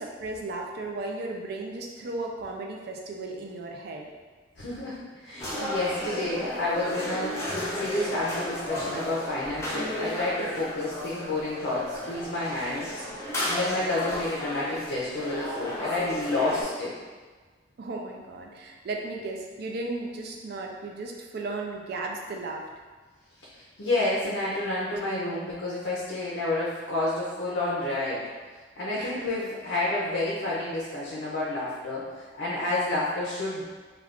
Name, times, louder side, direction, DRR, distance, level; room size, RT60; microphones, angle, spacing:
voice 1, 0.0-4.1 17.8-22.7 28.9-29.2 31.0-31.2, right 2 dB, 55° right, 1 dB, 0.4 m, -35 dB
voice 2, 4.6-13.0 13.5-16.9 23.8-28.2 28.8-33.6, left 2 dB, 65° left, -6 dB, 0.5 m, -30 dB
sound 1, 5.4-16.6, left 1 dB, 15° left, 0.5 m, -33 dB
2.4 x 2.2 x 3.4 m, 1.4 s
head